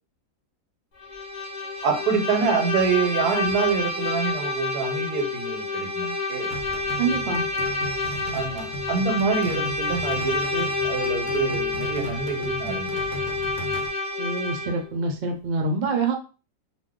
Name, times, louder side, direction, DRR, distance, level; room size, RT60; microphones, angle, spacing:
Bowed string instrument, 1.0-14.9, left 3 dB, 50° left, 0.6 m, -28 dB
voice 1, 1.8-6.5 8.3-13.0, right 5 dB, 85° right, 5 dB, 1.2 m, -26 dB
sound 1, 6.5-13.9, right 1 dB, 80° left, 1.1 m, -37 dB
voice 2, 7.0-7.5 14.2-16.1, right 4 dB, 50° right, 3 dB, 0.7 m, -26 dB
2.7 x 2.2 x 3.6 m, 0.33 s
omnidirectional pair, 1.6 m